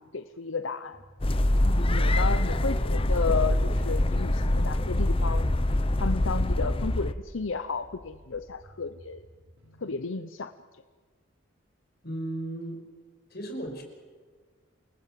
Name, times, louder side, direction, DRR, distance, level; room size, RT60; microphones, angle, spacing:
voice 1, 0.1-1.0 1.6-5.5 6.0-9.2 9.8-10.5, left 4 dB, 80° left, 10 dB, 0.9 m, -33 dB
sound 1, 1.2-7.1, left 1 dB, 30° left, 0.8 m, -24 dB
voice 2, 2.2-2.6 12.0-12.8 13.3-13.8, right 1 dB, 50° left, 4 dB, 5.8 m, -36 dB
sound 2, 7.2-10.7, equal, 75° right, 6.5 m, -55 dB
29.0 x 20.0 x 7.8 m, 1.5 s
head